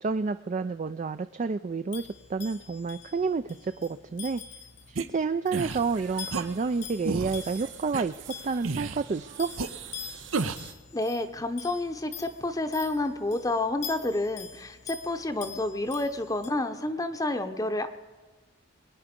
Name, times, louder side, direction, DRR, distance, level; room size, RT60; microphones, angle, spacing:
voice 1, 0.0-4.4 4.9-8.1 8.4-9.5, right 4 dB, 35° right, 11 dB, 0.3 m, -29 dB
sound 1, 1.9-16.5, left 8 dB, 55° left, 1.1 m, -45 dB
sound 2, 5.0-5.1 5.5-5.8 6.3-6.4 7.0-7.4 7.9-8.0 8.6-9.0 9.6-9.7 10.3-10.7, right 3 dB, 85° right, 0.8 m, -30 dB
sound 3, 5.7-10.7, right 7 dB, 60° right, 1.1 m, -46 dB
voice 2, 10.9-17.9, left 2 dB, 20° left, 8 dB, 0.8 m, -29 dB
22.5 x 9.7 x 5.2 m, 1.3 s
head